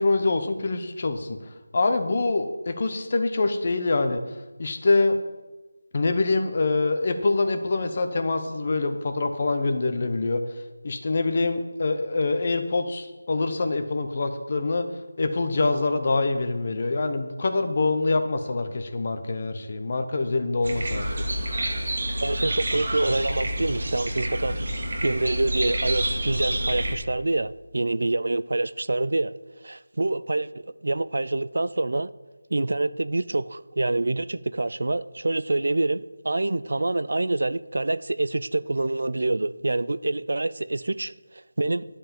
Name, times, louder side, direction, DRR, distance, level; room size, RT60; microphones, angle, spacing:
voice 1, 0.0-1.4 1.7-4.2 4.6-5.2 5.9-10.4 10.8-14.9 15.2-21.2, left 3 dB, 30° left, 8 dB, 0.8 m, -25 dB
sound 1, 20.6-27.0, right 1 dB, 40° right, 1.6 m, -28 dB
voice 2, 22.2-24.6 25.0-29.3 29.6-32.1 32.5-41.8, right 2 dB, 55° right, 16 dB, 0.4 m, -26 dB
12.0 x 5.6 x 7.2 m, 1.2 s
figure-of-eight pair, 175°, 0 cm